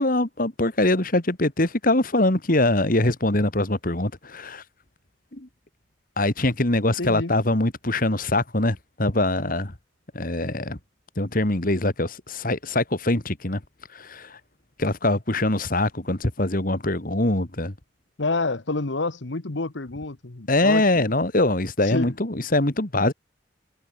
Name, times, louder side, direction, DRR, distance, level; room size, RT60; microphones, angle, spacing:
voice 1, 0.0-4.6 5.3-5.5 6.2-9.7 10.1-10.8 11.2-13.6 13.9-14.4 14.8-17.7 20.5-23.1, left 2 dB, 50° left, 2.3 m, -23 dB
voice 2, 7.0-7.3 18.2-21.1 21.8-22.1, left 3 dB, 75° left, 1.3 m, -28 dB
head